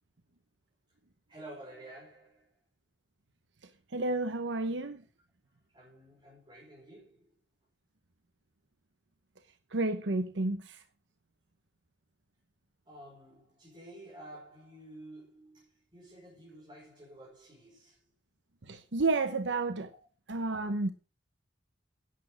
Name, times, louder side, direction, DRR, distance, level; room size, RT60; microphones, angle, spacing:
voice 1, 1.3-2.5 5.7-7.3 12.9-18.0 19.9-20.0, right 1 dB, 25° right, 4.9 m, -51 dB
voice 2, 3.9-5.0 9.7-10.8 18.7-19.9 20.3-20.9, right 3 dB, 75° right, 0.9 m, -31 dB
11.0 x 8.5 x 6.2 m
head